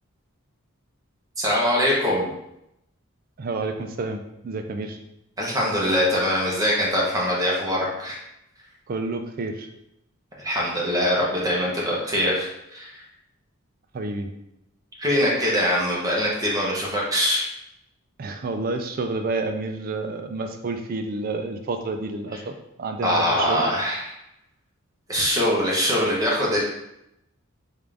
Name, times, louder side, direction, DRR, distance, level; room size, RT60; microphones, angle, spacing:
voice 1, 1.4-2.3 5.4-8.2 10.4-13.0 15.0-17.5 23.0-24.0 25.1-26.6, equal, 15° right, -4 dB, 0.7 m, -23 dB
voice 2, 3.4-5.0 8.9-9.7 13.9-14.3 18.2-23.6, right 3 dB, 40° right, 6 dB, 0.3 m, -29 dB
3.6 x 2.4 x 3.3 m, 0.83 s
head